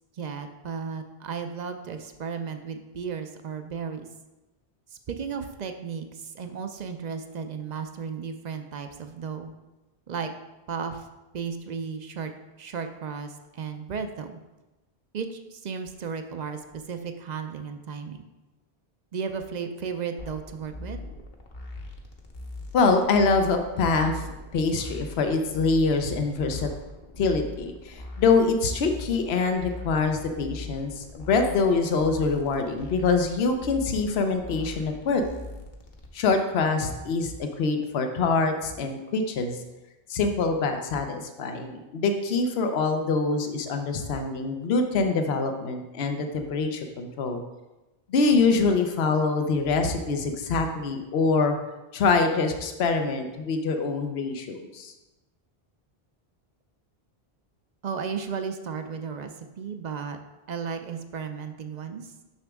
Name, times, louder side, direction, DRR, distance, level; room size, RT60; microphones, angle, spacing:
voice 1, 0.2-4.1 5.1-6.1 6.3-9.5 10.1-10.3 10.7-11.0 11.3-12.3 12.6-14.4 15.1-18.2 19.1-21.0 57.8-59.3 59.6-60.2 60.5-62.1, right 6 dB, 55° right, 7 dB, 0.6 m, -34 dB
sound 1, 20.2-36.1, left 2 dB, 50° left, 1.0 m, -41 dB
voice 2, 22.7-24.2 24.5-26.7 27.2-35.2 36.1-39.6 40.1-47.4 48.1-51.6 51.9-54.9, left 4 dB, 80° left, 5 dB, 0.9 m, -25 dB
6.7 x 6.0 x 3.5 m, 1.1 s
omnidirectional pair, 1.0 m